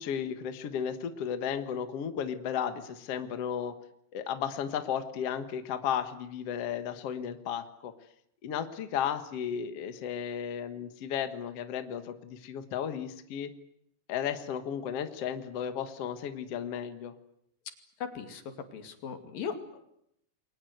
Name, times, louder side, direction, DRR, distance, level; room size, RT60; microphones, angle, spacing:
voice 1, 0.0-3.8 4.1-7.9 8.4-13.5 14.1-17.1, left 8 dB, 55° left, 9 dB, 2.1 m, -34 dB
voice 2, 18.0-19.9, left 6 dB, 80° left, 7 dB, 4.2 m, -38 dB
29.0 x 23.0 x 8.0 m, 0.75 s
omnidirectional pair, 3.9 m